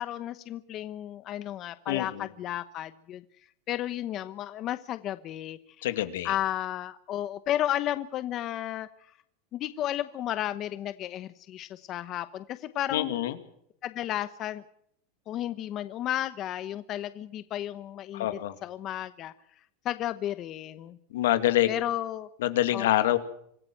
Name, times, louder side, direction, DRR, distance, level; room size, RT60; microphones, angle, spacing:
voice 1, 0.0-3.2 3.7-5.9 6.2-8.9 9.5-13.1 13.8-14.6 15.3-19.3 19.8-21.0 21.7-22.3 22.7-22.9, left 12 dB, 35° left, 13 dB, 0.9 m, -33 dB
voice 2, 1.9-2.3 5.8-6.4 12.9-13.4 18.1-18.5 21.1-21.7 22.4-23.2, left 13 dB, 85° left, 10 dB, 2.4 m, -26 dB
26.0 x 15.0 x 7.7 m, 0.70 s
supercardioid pair, 145°, 0 cm